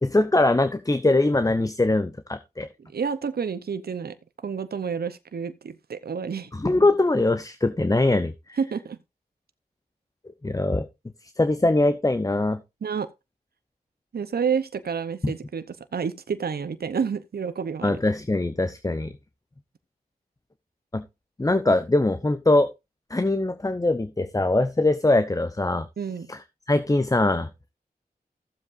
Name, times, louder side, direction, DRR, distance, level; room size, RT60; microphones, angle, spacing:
voice 1, 0.0-2.7 6.5-8.6 10.4-10.9 11.4-12.6 15.2-15.3 17.8-19.1 20.9-21.0 21.4-22.7 23.1-25.9 26.3-26.4 26.7-27.5, left 2 dB, 20° left, 0.8 m, -22 dB
voice 2, 2.8-4.2 4.4-6.5 8.6-9.0 12.8-13.1 14.1-18.0 26.0-26.3, right 6 dB, 75° right, 0.7 m, -29 dB
14.5 x 7.5 x 2.6 m
cardioid pair, 45°, 16 cm